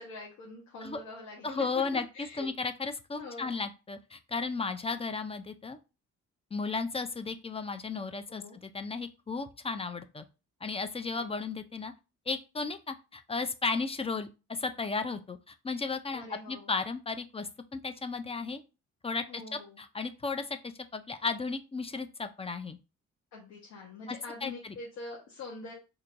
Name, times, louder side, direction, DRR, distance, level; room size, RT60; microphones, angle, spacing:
voice 1, 0.0-2.5 3.1-3.5 8.3-8.6 11.1-11.4 16.1-16.7 19.3-19.8 23.3-25.7, left 3 dB, 70° left, -2 dB, 1.0 m, -44 dB
voice 2, 1.4-2.0 2.4-5.8 6.5-10.2 10.6-11.9 12.3-18.6 19.0-22.8 24.1-24.2 24.4-24.7, left 4 dB, 20° left, 9 dB, 0.4 m, -34 dB
4.4 x 2.7 x 2.5 m, 0.30 s
cardioid pair, 90°, 30 cm